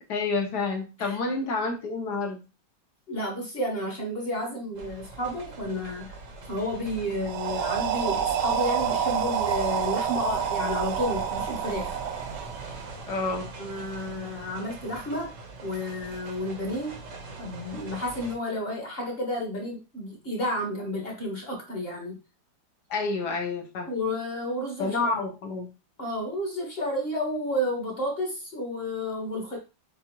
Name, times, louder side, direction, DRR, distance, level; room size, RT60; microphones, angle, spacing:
voice 1, 0.1-2.4 13.1-13.4 22.9-23.9 24.8-25.7, left 3 dB, 65° left, 3 dB, 1.2 m, -29 dB
voice 2, 3.1-6.1 6.5-12.0 13.6-15.3 15.6-17.0 17.4-22.2 23.9-25.1 26.0-29.6, left 1 dB, 35° left, 0 dB, 1.4 m, -31 dB
sound 1, 4.7-18.4, right 3 dB, 50° right, 1.1 m, -42 dB
sound 2, 7.2-13.1, right 8 dB, 75° right, 1.1 m, -28 dB
7.0 x 2.4 x 2.9 m, 0.28 s
omnidirectional pair, 2.0 m